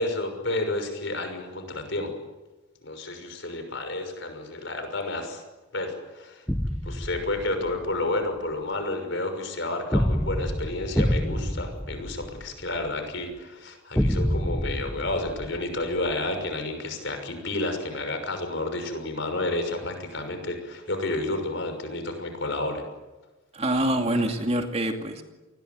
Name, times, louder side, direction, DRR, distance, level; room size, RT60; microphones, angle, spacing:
voice 1, 0.0-2.1 2.8-5.4 5.7-6.4 6.8-22.8, left 2 dB, 55° left, 7 dB, 6.1 m, -30 dB
sound 1, 6.5-7.9 9.9-12.9 13.9-16.1, equal, 5° left, 1.0 m, -27 dB
voice 2, 23.5-25.2, right 1 dB, 30° right, 4 dB, 2.5 m, -25 dB
29.5 x 20.5 x 9.4 m, 1.1 s
head